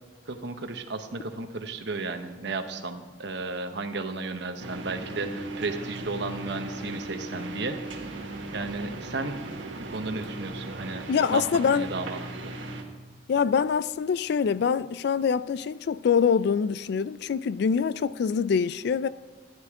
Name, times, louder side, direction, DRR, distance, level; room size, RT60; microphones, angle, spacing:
voice 1, 0.3-7.8 8.5-9.5 9.8-12.5, right 3 dB, 65° right, 1.0 m, -34 dB
sound 1, 4.6-12.8, right 2 dB, 85° right, 1.4 m, -37 dB
voice 2, 11.1-11.9 13.3-19.1, left 6 dB, 60° left, 0.3 m, -24 dB
13.0 x 10.5 x 3.6 m
head